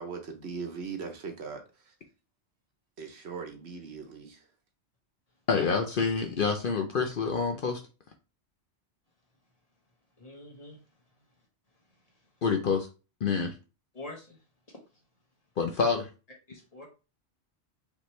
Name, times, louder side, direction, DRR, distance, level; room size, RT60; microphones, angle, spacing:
voice 1, 0.0-1.9 3.0-4.4, right 5 dB, 65° right, 1.2 m, -40 dB
voice 2, 5.5-7.8 12.4-12.9 13.2-13.5 15.6-16.1, left 5 dB, 55° left, 0.8 m, -27 dB
voice 3, 10.2-10.8 13.9-14.4 14.7-14.8 16.5-16.9, left 2 dB, 35° left, 1.4 m, -45 dB
5.2 x 3.0 x 3.2 m
omnidirectional pair, 1.2 m